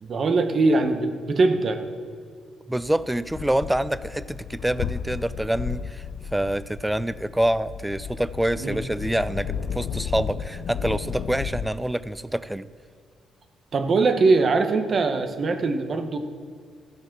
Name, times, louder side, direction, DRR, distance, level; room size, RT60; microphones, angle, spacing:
voice 1, 0.0-1.8 8.6-8.8 13.7-16.2, right 3 dB, 50° right, 7 dB, 1.1 m, -21 dB
sound 1, 2.7-11.7, left 8 dB, 70° left, 0.4 m, -34 dB
voice 2, 2.7-6.0 6.3-12.7, right 1 dB, 5° right, 16 dB, 0.4 m, -26 dB
14.5 x 7.2 x 6.0 m, 2.1 s
cardioid pair, 90°, 0 cm